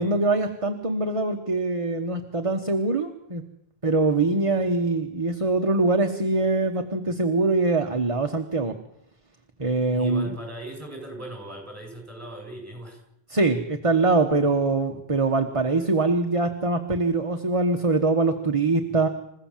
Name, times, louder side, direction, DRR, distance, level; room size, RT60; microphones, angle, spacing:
voice 1, 0.0-3.4 3.8-8.8 9.6-10.3 13.3-19.1, right 3 dB, 35° right, 5 dB, 1.3 m, -23 dB
voice 2, 9.9-13.0 18.9-19.1, right 2 dB, 15° right, 2 dB, 7.1 m, -38 dB
28.0 x 15.5 x 7.4 m, 0.81 s
omnidirectional pair, 1.0 m